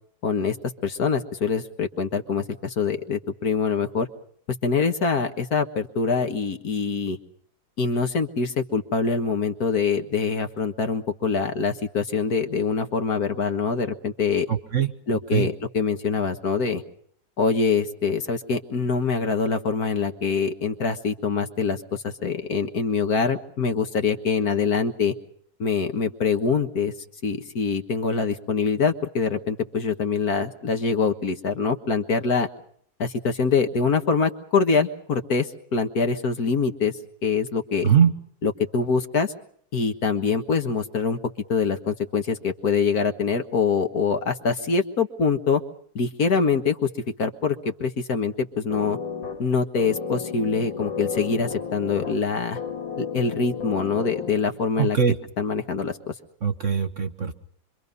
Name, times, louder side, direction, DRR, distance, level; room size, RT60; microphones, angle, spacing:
voice 1, 0.2-0.6 0.8-4.1 4.6-7.2 7.8-14.5 15.1-16.8 17.4-25.1 25.6-26.9 27.2-32.5 33.0-37.9 38.4-39.3 39.7-41.2 41.5-45.6 46.0-46.9 47.2-49.0 49.4-52.6 53.0-55.0 55.4-56.1, left 5 dB, 55° left, 7 dB, 1.9 m, -24 dB
voice 2, 14.5-14.9 15.3-15.5 37.8-38.1 54.8-55.2 56.4-57.3, right 7 dB, 45° right, 9 dB, 1.4 m, -21 dB
sound 1, 48.7-54.7, left 6 dB, 75° left, 3.2 m, -34 dB
26.0 x 25.0 x 5.4 m, 0.62 s
omnidirectional pair, 2.1 m